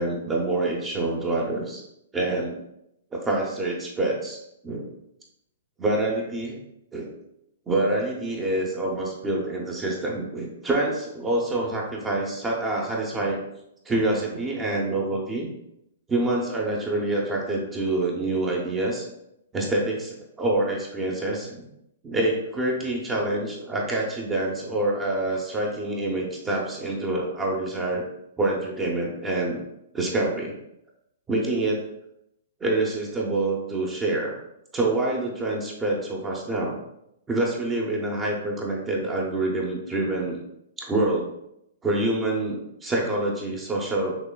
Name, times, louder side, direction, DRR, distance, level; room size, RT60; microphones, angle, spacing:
voice 1, 0.0-1.8 2.1-2.6 3.1-4.9 5.8-6.6 6.9-7.1 7.7-13.4 13.9-15.5 16.1-19.1 19.5-21.6 22.0-28.0 28.4-29.6 29.9-30.5 31.3-31.8 32.6-34.4 34.7-36.7 37.3-40.4 40.8-41.3 41.8-44.2, right 2 dB, 15° right, -2 dB, 0.8 m, -26 dB
6.0 x 3.1 x 2.3 m, 0.81 s
hypercardioid pair, 140°, 0 cm